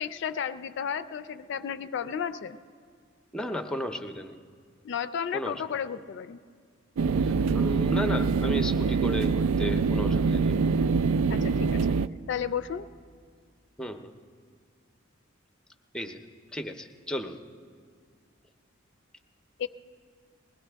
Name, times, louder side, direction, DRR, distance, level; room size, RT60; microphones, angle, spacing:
voice 1, 0.0-2.6 4.8-6.4 11.3-11.9 12.3-12.9 19.6-19.7, left 7 dB, 60° left, 12 dB, 0.4 m, -33 dB
voice 2, 3.3-4.4 5.3-5.6 7.2-10.7 13.8-14.1 15.9-16.2 16.5-17.4, equal, 5° left, 7 dB, 0.5 m, -34 dB
sound 1, 7.0-12.1, right 4 dB, 85° right, 0.3 m, -24 dB
20.5 x 16.0 x 3.4 m, 2.1 s
head